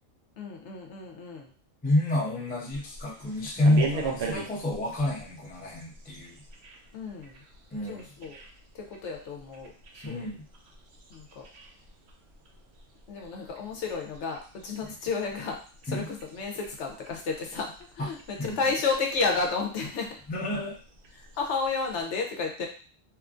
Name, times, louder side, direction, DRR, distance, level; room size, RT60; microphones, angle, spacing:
voice 1, 0.4-1.5 6.9-7.4 7.9-8.4 8.7-10.2 11.1-11.5 13.1-15.6 15.8-20.2 21.2-22.7, left 4 dB, 70° left, 2 dB, 0.9 m, -32 dB
voice 2, 1.8-6.4 7.7-8.1 10.0-10.5 14.9-15.0 15.9-16.1 18.0-18.1 18.4-18.6 20.3-20.8, left 1 dB, 10° left, -4 dB, 0.4 m, -28 dB
sound 1, 2.7-22.0, right 5 dB, 65° right, 0.8 m, -43 dB
3.0 x 2.3 x 2.4 m, 0.38 s
omnidirectional pair, 1.3 m